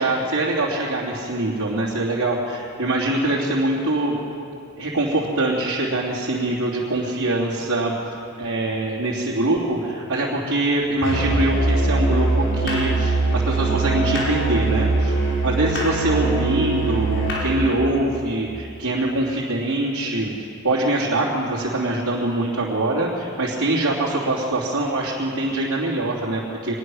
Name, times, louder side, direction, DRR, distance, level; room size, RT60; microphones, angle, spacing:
voice 1, 0.0-4.1 4.8-15.2 15.4-26.7, right 2 dB, 65° right, -6 dB, 3.1 m, -23 dB
Musical instrument, 11.0-17.8, right 2 dB, 60° left, 5.4 m, -22 dB
24.5 x 20.5 x 6.4 m, 2.6 s
head